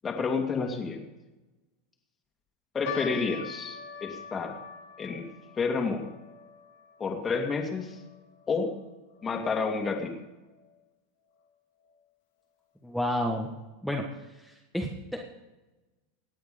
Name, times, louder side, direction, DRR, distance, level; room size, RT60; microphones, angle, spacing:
voice 1, 0.0-1.0 2.7-4.6 5.0-5.3 5.6-6.1 7.0-8.0 8.5-8.8 9.2-10.1, left 4 dB, 25° left, 2 dB, 2.4 m, -30 dB
sound 1, 2.9-9.3 9.6-9.7 10.5-10.7 11.4-11.5 11.8-12.0, left 6 dB, 75° left, 2.3 m, -44 dB
voice 2, 12.8-13.5 13.8-14.1 14.4-15.3, equal, ahead, 1 dB, 1.6 m, -31 dB
17.5 x 9.1 x 5.2 m, 1.1 s
hypercardioid pair, 100°, 0 cm